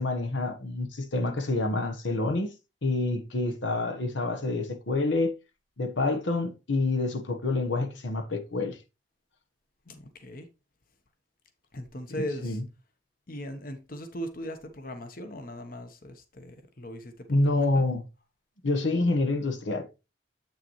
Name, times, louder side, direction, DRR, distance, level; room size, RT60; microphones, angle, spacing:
voice 1, 0.0-2.5 2.8-5.4 5.8-8.8 12.2-12.6 17.3-18.0 18.6-20.0, left 2 dB, 85° left, 1.2 m, -27 dB
voice 2, 9.9-10.5 11.7-12.6 13.3-17.8, equal, 50° left, 1.1 m, -39 dB
8.2 x 6.7 x 3.1 m
head